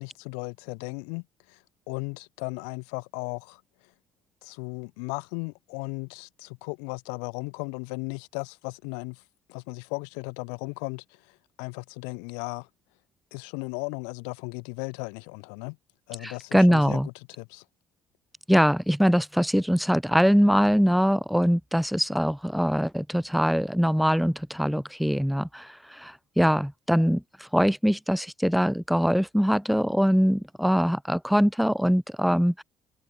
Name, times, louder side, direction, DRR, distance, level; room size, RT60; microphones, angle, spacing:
voice 1, 0.0-1.6 1.9-3.6 4.4-9.2 9.5-12.7 13.3-15.8 16.1-17.6, left 40 dB or more, 70° left, 0.4 m, -36 dB
voice 2, 16.2-17.1 18.5-32.6, equal, ahead, 0.7 m, -23 dB
figure-of-eight pair, 50°, 3 cm